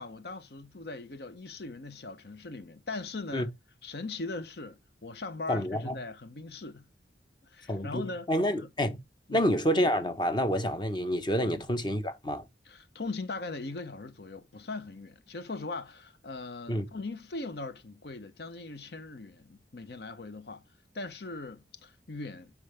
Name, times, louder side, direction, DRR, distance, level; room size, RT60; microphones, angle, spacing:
voice 1, 0.0-3.5 3.8-6.9 7.4-8.3 8.6-8.7 9.3-9.5 11.4-11.6 12.6-20.6 20.9-22.5, left 3 dB, 60° left, 0.8 m, -40 dB
voice 2, 5.5-5.9 7.7-9.0 9.3-12.4 16.7-16.8, equal, 25° left, 1.1 m, -28 dB
9.1 x 4.7 x 3.3 m
head